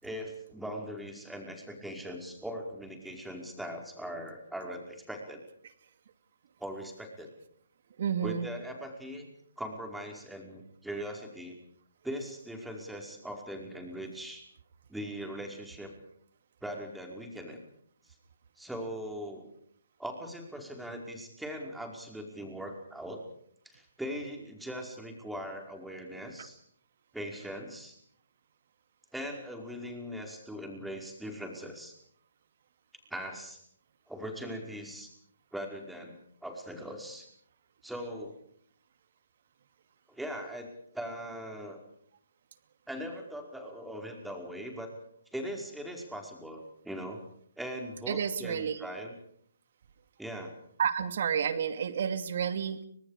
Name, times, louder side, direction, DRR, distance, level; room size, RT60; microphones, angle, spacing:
voice 1, 0.0-5.4 6.6-7.3 8.2-9.3 9.6-11.6 12.0-14.4 14.9-15.9 16.6-17.6 18.6-19.5 20.0-23.2 23.7-26.6 27.1-28.0 29.1-32.0 33.1-33.6 34.1-35.1 35.5-36.2 36.4-37.3 37.8-38.4 40.1-41.8 42.9-44.9 45.3-47.2 47.6-49.1 50.2-50.5, equal, ahead, 2 dB, 5.1 m, -40 dB
voice 2, 8.0-8.5 48.1-48.9 50.8-52.8, right 7 dB, 50° right, 10 dB, 2.4 m, -30 dB
30.0 x 25.5 x 5.1 m, 0.65 s
figure-of-eight pair, 130°, 0 cm